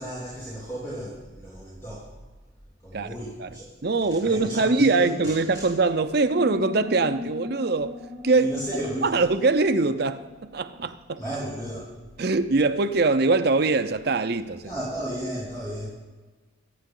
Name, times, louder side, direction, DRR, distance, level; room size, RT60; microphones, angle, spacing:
voice 1, 0.0-2.1 2.8-3.7 4.1-5.7 8.4-9.2 11.2-11.9 14.6-15.9, right 1 dB, 15° left, 3.5 m, -33 dB
voice 2, 3.4-7.9 8.2-8.5 9.0-10.2 10.5-11.2 12.2-14.7, right 3 dB, 50° right, 0.6 m, -23 dB
sound 1, 6.2-11.4, left 3 dB, 10° right, 1.8 m, -39 dB
24.5 x 9.1 x 3.8 m
head